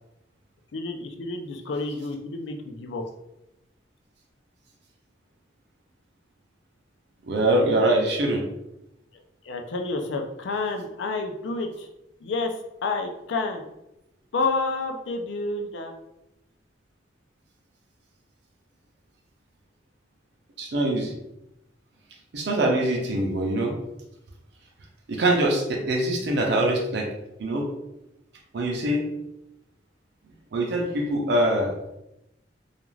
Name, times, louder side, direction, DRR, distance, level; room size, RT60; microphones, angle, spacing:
voice 1, 0.7-3.0 9.1-11.9 12.2-12.6 12.8-13.6 14.3-15.9, left 3 dB, 75° left, 4 dB, 0.4 m, -29 dB
voice 2, 7.2-8.4 20.6-21.1 22.3-23.7 25.1-27.1 27.4-27.7 28.5-29.0 30.5-31.7, right 1 dB, 60° right, 0 dB, 0.5 m, -23 dB
2.4 x 2.3 x 3.1 m, 0.87 s
head